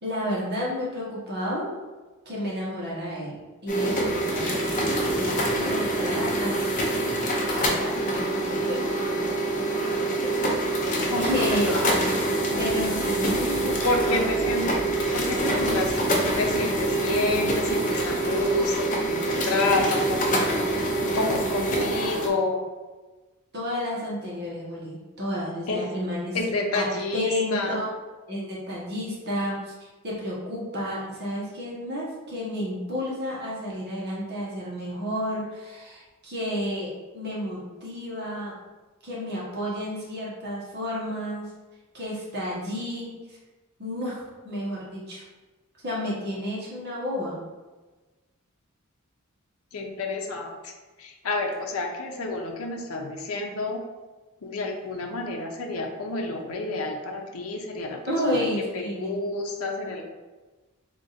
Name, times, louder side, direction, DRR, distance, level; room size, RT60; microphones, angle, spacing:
voice 1, 0.0-1.7 2.2-4.7 4.9-6.8 7.6-8.0 8.5-9.0 9.4-9.8 11.2-11.7 12.6-13.8 14.1-14.3 21.7-21.9 23.5-26.4 26.7-26.9 27.1-27.9 28.3-29.7 30.0-38.6 39.0-41.5 41.9-43.4 43.8-45.2 45.8-47.4 58.1-59.2, left 1 dB, 50° right, -6 dB, 1.2 m, -31 dB
sound 1, 3.7-22.3, right 1 dB, 40° left, 0.7 m, -25 dB
voice 2, 11.0-11.9 13.8-20.6 21.1-22.7 25.7-25.8 26.3-27.8 49.7-50.7 51.0-53.8 54.4-58.5 58.7-60.0, left 2 dB, 85° left, 2 dB, 0.6 m, -29 dB
sound 2, 12.5-18.8, right 2 dB, 70° right, 0.6 m, -41 dB
3.6 x 2.5 x 4.1 m, 1.2 s
head